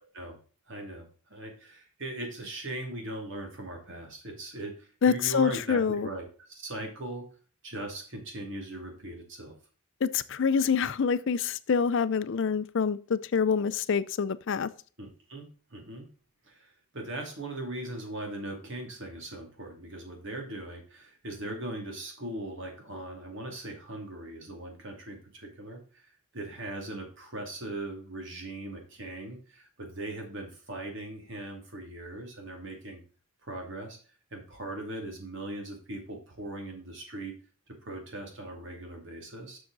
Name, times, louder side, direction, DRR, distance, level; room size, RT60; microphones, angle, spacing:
voice 1, 0.7-7.3 7.6-9.5 15.0-16.1 16.4-33.0 33.4-34.0 34.3-37.3 37.7-39.6, right 1 dB, 55° right, 2.5 m, -39 dB
voice 2, 5.0-6.1 10.0-14.7, left 6 dB, 55° left, 0.4 m, -26 dB
7.5 x 6.4 x 3.9 m
head